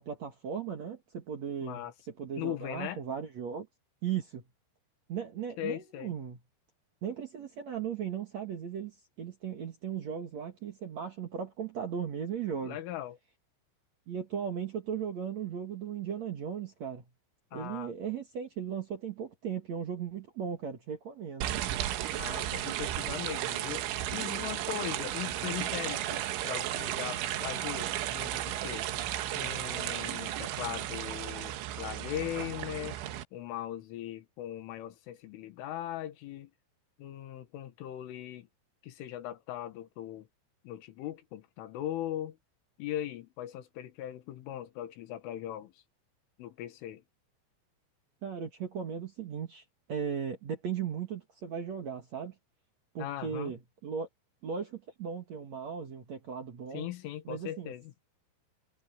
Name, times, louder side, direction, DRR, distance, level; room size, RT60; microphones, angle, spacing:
voice 1, 0.0-1.9 2.2-3.7 4.0-4.4 5.1-6.4 7.0-12.8 14.1-17.0 17.5-21.5 48.2-49.6 49.9-52.3 52.9-54.1 54.4-56.9 57.3-57.7, right 7 dB, 55° right, 2.1 m, -37 dB
voice 2, 1.6-1.9 2.4-3.0 5.6-6.1 12.6-13.2 17.5-17.9 22.2-23.9 24.1-28.9 29.3-33.0 33.3-36.5 37.0-38.5 38.8-40.3 40.6-42.4 42.8-45.7 46.4-47.0 53.0-53.5 56.7-57.9, left 12 dB, 90° left, 4.2 m, -39 dB
sound 1, 21.4-33.2, right 13 dB, 85° right, 3.7 m, -34 dB
omnidirectional pair, 5.5 m